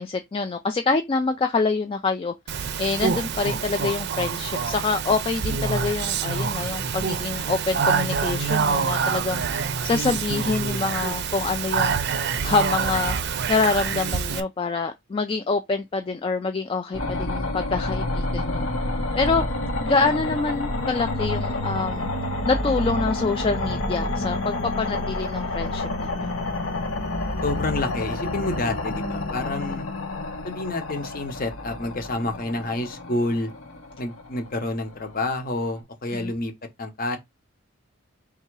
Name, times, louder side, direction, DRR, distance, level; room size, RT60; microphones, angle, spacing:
voice 1, 0.0-9.4 9.8-11.9 12.4-13.1 13.5-18.7 19.1-19.4 19.8-22.1 22.4-26.3 36.1-36.3, left 4 dB, 25° left, 0.3 m, -26 dB
Speech, 2.5-14.4, right 6 dB, 55° right, 0.5 m, -26 dB
sound 1, 16.9-35.7, left 2 dB, 85° left, 1.2 m, -29 dB
voice 2, 27.4-29.9 30.4-33.5 34.0-36.5 36.8-37.2, left 2 dB, 45° left, 0.9 m, -28 dB
3.6 x 2.8 x 4.6 m
head